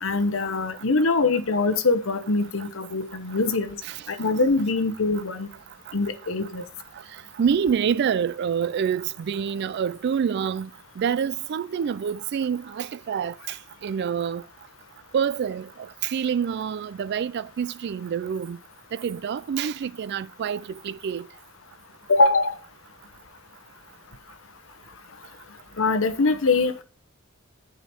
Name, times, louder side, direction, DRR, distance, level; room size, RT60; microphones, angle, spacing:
voice 1, 0.0-3.8 4.1-5.5 5.9-6.6 22.1-22.6 25.8-26.8, left 3 dB, 70° left, 0.9 m, -23 dB
voice 2, 7.1-10.7 11.0-13.6 13.8-14.4 15.1-18.6 18.9-21.3, right 7 dB, 55° right, 0.3 m, -27 dB
10.0 x 5.0 x 4.3 m
head